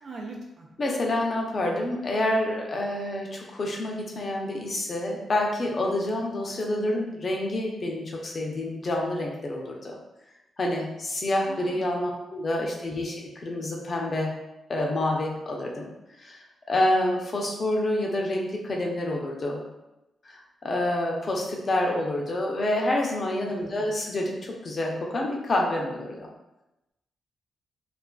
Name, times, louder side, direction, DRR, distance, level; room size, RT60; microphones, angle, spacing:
voice 1, 0.0-0.7 11.5-12.0 12.6-12.7 23.4-23.8, right 2 dB, 65° right, -1 dB, 0.6 m, -42 dB
voice 2, 0.8-9.9 10.6-13.2 13.4-14.3 14.7-15.9 16.2-16.4 16.7-19.6 20.2-26.3, left 1 dB, 50° left, 0 dB, 0.6 m, -28 dB
2.4 x 2.4 x 2.2 m, 0.95 s
supercardioid pair, 50°, 0 cm